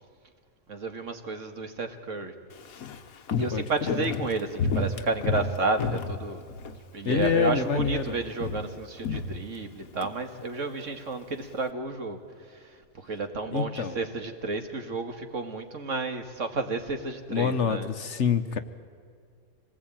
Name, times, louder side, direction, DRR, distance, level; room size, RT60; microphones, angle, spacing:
voice 1, 0.7-2.3 3.3-6.4 6.9-17.9, right 3 dB, 60° right, 6 dB, 2.0 m, -32 dB
Walk footsteps, 2.5-6.8 7.1-7.5 7.8-10.1 10.4-10.5, left 4 dB, 75° left, 1.5 m, -31 dB
voice 2, 3.5-4.1 7.0-8.2 13.5-14.0 17.3-18.6, left 6 dB, 55° left, 10 dB, 1.2 m, -27 dB
26.0 x 19.5 x 8.9 m, 2.1 s
omnidirectional pair, 1.5 m